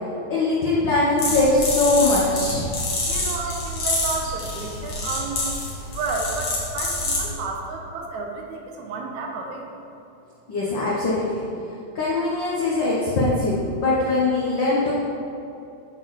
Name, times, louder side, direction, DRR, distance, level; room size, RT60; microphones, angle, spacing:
voice 1, 0.3-2.7 10.5-11.4 11.9-14.9, left 2 dB, 80° left, -7 dB, 1.0 m, -21 dB
sound 1, 1.2-7.3, left 2 dB, 55° left, 2.3 m, -27 dB
voice 2, 3.1-5.5 5.9-9.7, right 4 dB, 75° right, 1 dB, 2.0 m, -31 dB
8.6 x 3.9 x 4.8 m, 2.7 s
omnidirectional pair, 3.5 m